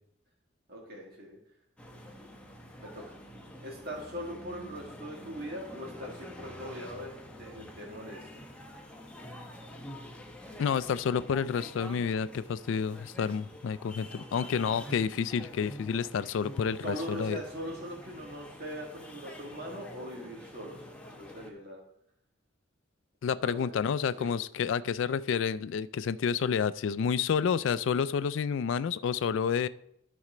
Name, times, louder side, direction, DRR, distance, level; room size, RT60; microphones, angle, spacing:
voice 1, 0.7-1.4 2.8-3.2 3.6-7.1 7.4-8.6 16.8-21.8 23.4-23.7 24.2-24.3, equal, 50° right, -3 dB, 1.8 m, -41 dB
sound 1, 1.8-21.5, left 1 dB, 5° left, 0.8 m, -47 dB
voice 2, 10.6-17.4 23.2-29.7, left 7 dB, 75° left, 16 dB, 0.3 m, -29 dB
12.5 x 4.3 x 4.9 m, 0.74 s
head